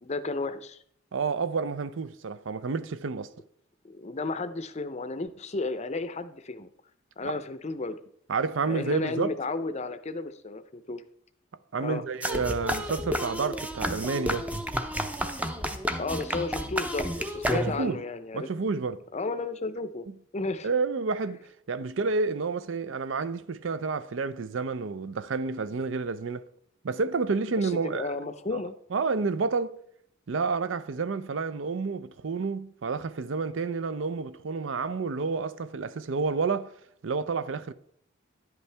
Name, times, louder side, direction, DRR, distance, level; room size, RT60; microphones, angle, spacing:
voice 1, 0.0-0.8 3.8-6.7 7.2-8.0 8.6-11.0 11.8-12.0 16.0-18.5 19.1-20.1 20.3-20.7 27.5-28.7, left 3 dB, 35° left, 0.6 m, -33 dB
voice 2, 1.1-3.3 7.2-7.3 8.3-9.4 11.7-14.5 17.5-18.0 18.3-19.0 20.1-20.2 20.6-26.4 26.8-28.1 28.5-28.6 28.9-29.8 30.3-36.7 37.0-37.7, right 4 dB, 65° right, 0.5 m, -30 dB
sound 1, 12.2-18.0, equal, 5° right, 0.6 m, -31 dB
10.5 x 8.2 x 3.4 m
head